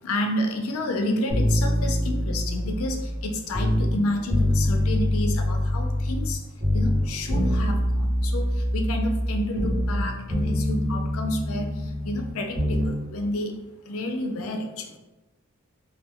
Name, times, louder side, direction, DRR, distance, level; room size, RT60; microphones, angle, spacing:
voice 1, 0.0-6.4 6.7-11.7 12.0-13.5 13.9-15.0, left 1 dB, 65° left, 4 dB, 0.4 m, -30 dB
sound 1, 1.3-4.0 4.3-6.3 6.6-10.0 10.3-12.9 13.2-13.3, left 1 dB, 40° right, 0.9 m, -25 dB
2.3 x 2.2 x 3.5 m, 1.1 s
head